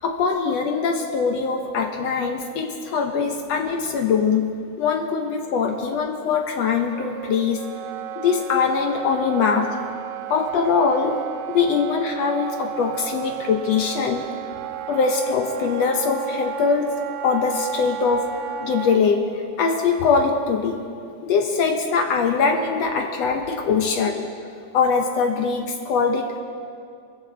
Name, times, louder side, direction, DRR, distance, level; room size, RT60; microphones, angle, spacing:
voice 1, 0.0-4.5 4.8-7.6 8.2-9.7 10.3-11.2 11.5-14.3 14.9-16.9 17.2-18.3 18.6-19.2 19.6-20.8 21.2-24.1 24.7-26.4, left 5 dB, 65° left, 4 dB, 1.8 m, -22 dB
Wind instrument woodwind instrument, 6.9-19.0, right 9 dB, 75° right, 1.9 m, -33 dB
23.0 x 14.5 x 4.0 m, 2.3 s
omnidirectional pair, 3.6 m